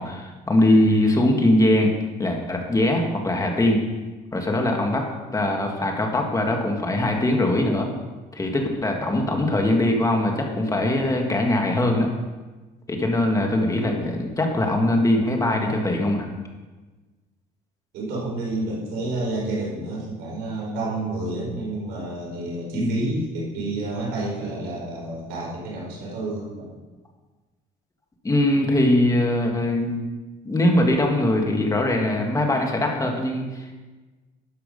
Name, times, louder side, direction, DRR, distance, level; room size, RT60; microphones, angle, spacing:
voice 1, 0.0-1.9 2.2-3.8 4.3-5.0 5.3-7.9 8.3-12.1 12.9-16.3 22.7-23.0 28.2-30.0 30.5-33.7, left 1 dB, 20° left, 2 dB, 1.9 m, -21 dB
voice 2, 17.9-26.7, right 2 dB, 85° right, -3 dB, 4.4 m, -29 dB
12.0 x 7.5 x 5.4 m, 1.2 s
cardioid pair, 110°, 17 cm